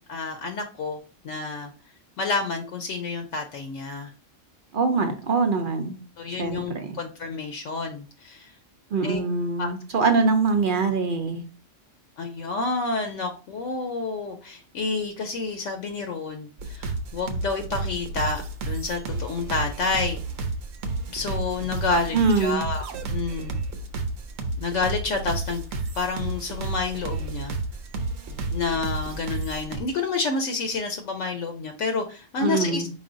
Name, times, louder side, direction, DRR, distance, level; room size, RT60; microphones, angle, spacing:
voice 1, 0.1-1.0 1.2-1.7 2.2-4.1 6.2-8.5 9.0-9.2 9.6-9.7 12.2-20.2 21.1-23.6 24.6-25.6 26.0-27.5 28.5-32.8, left 4 dB, 75° left, 5 dB, 0.9 m, -29 dB
voice 2, 4.7-6.0 6.3-7.0 8.9-11.4 22.1-22.6 32.4-32.9, right 4 dB, 60° right, 6 dB, 0.6 m, -23 dB
sound 1, 16.6-29.8, right 3 dB, 85° right, 1.1 m, -31 dB
4.9 x 3.8 x 2.5 m, 0.37 s
omnidirectional pair, 1.3 m